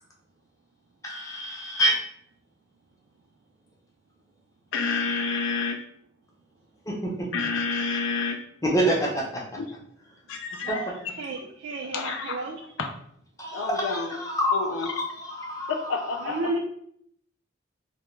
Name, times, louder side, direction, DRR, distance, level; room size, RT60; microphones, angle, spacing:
voice 1, 1.0-2.0 6.9-7.3 8.6-9.4 10.7-10.8 13.4-15.9, equal, 15° left, -2 dB, 0.5 m, -27 dB
voice 2, 4.7-5.8 7.3-8.4 9.6-9.7 10.3-10.8 11.9-12.4 12.8-12.9 13.5-14.2 14.5-14.9 15.7-16.6, left 4 dB, 90° left, 4 dB, 0.3 m, -29 dB
voice 3, 11.2-12.6 16.2-16.6, right 2 dB, 80° right, 1 dB, 0.3 m, -32 dB
2.2 x 2.1 x 3.0 m, 0.66 s
head